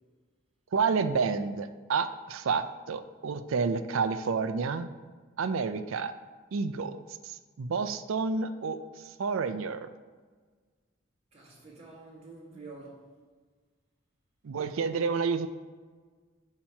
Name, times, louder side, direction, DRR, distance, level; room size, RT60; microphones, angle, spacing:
voice 1, 0.7-4.9 5.4-6.1 6.5-7.0 7.2-8.8 9.0-9.9 14.4-15.5, right 5 dB, 80° right, 11 dB, 0.4 m, -29 dB
voice 2, 11.3-13.1, right 3 dB, 30° right, -4 dB, 1.6 m, -48 dB
8.6 x 2.9 x 5.7 m, 1.5 s
head